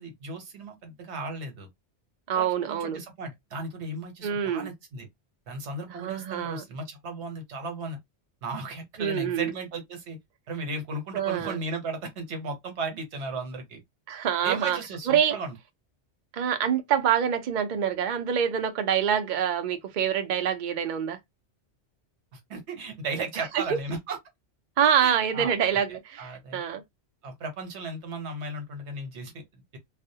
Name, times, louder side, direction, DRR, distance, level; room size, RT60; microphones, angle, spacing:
voice 1, 0.0-1.7 2.3-5.1 5.5-8.0 8.4-10.2 10.5-13.8 14.4-15.5 22.3-24.2 25.0-25.5 26.2-26.6 27.2-29.8, right 3 dB, 70° right, 1.1 m, -35 dB
voice 2, 2.3-3.0 4.2-4.7 5.9-6.6 9.0-9.5 11.1-11.6 14.1-14.8 15.1-15.4 16.3-21.2 23.4-23.6 24.8-26.8, right 8 dB, 55° right, 0.5 m, -26 dB
2.4 x 2.0 x 2.6 m
omnidirectional pair, 1.2 m